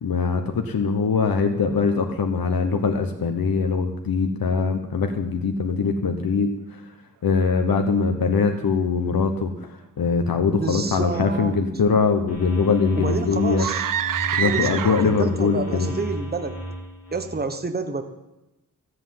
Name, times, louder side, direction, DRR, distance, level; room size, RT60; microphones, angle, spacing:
voice 1, 0.0-6.8 7.2-13.7 14.4-15.9, left 5 dB, 85° left, 5 dB, 1.2 m, -22 dB
voice 2, 10.6-11.5 13.0-13.9 14.4-16.5 17.1-18.0, right 4 dB, 30° right, 7 dB, 1.2 m, -29 dB
sound 1, 12.3-17.4, equal, 45° left, 3.8 m, -33 dB
sound 2, 13.5-15.3, right 10 dB, 65° right, 0.5 m, -26 dB
13.5 x 8.0 x 9.5 m, 0.97 s
wide cardioid pair, 95°, 35 cm